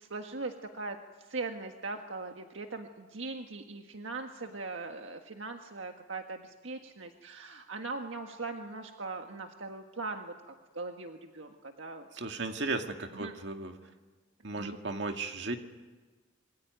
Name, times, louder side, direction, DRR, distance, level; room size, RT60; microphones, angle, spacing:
voice 1, 0.0-12.1 13.1-13.3 14.6-14.8, right 3 dB, 80° right, 4 dB, 1.6 m, -40 dB
voice 2, 12.1-13.7 14.4-15.6, right 3 dB, 60° right, 4 dB, 2.2 m, -35 dB
26.5 x 22.5 x 9.3 m, 1.3 s
head